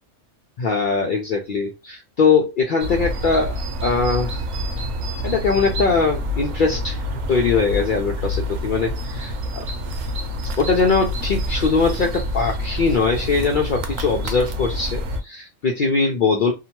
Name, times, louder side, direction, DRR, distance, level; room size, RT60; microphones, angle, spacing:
voice 1, 0.6-4.4 5.2-9.7 10.6-16.5, left 4 dB, 85° left, 0.4 m, -21 dB
sound 1, 2.8-15.2, left 1 dB, 70° right, 0.9 m, -27 dB
2.7 x 2.1 x 2.8 m
omnidirectional pair, 1.5 m